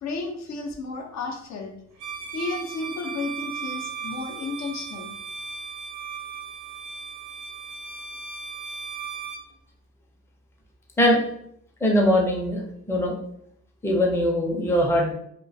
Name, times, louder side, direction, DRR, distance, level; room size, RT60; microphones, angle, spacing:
voice 1, 0.0-1.7 2.3-5.1, left 3 dB, 65° left, 3 dB, 0.5 m, -32 dB
Bowed string instrument, 2.0-9.5, right 5 dB, 80° right, 0.6 m, -36 dB
voice 2, 11.8-12.6 12.9-13.1 13.8-15.1, equal, 10° left, 0 dB, 0.5 m, -21 dB
2.2 x 2.1 x 2.6 m, 0.71 s
cardioid pair, 90°, 30 cm